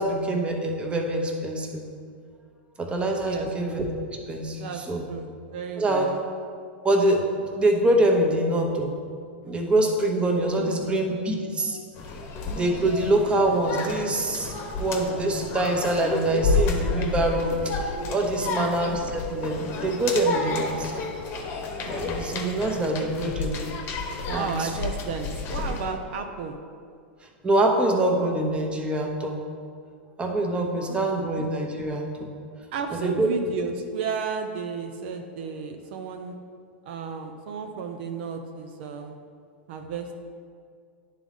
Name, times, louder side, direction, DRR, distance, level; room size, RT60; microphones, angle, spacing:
voice 1, 0.0-1.8 2.8-3.8 4.3-5.1 5.8-6.1 6.8-9.0 9.4-11.8 12.5-14.5 14.8-20.9 21.8-23.6 24.3-24.7 27.4-29.4 30.2-32.3 32.9-33.3, right 1 dB, 15° right, 2 dB, 0.9 m, -25 dB
voice 2, 4.6-5.2 5.5-6.2 10.6-10.9 18.4-18.7 24.2-26.5 30.9-31.3 32.7-36.3 36.9-39.1 39.7-40.1, right 5 dB, 65° right, 5 dB, 0.5 m, -33 dB
sound 1, 12.0-25.9, left 4 dB, 40° left, 0.9 m, -31 dB
10.0 x 3.7 x 3.6 m, 2.2 s
hypercardioid pair, 110°, 6 cm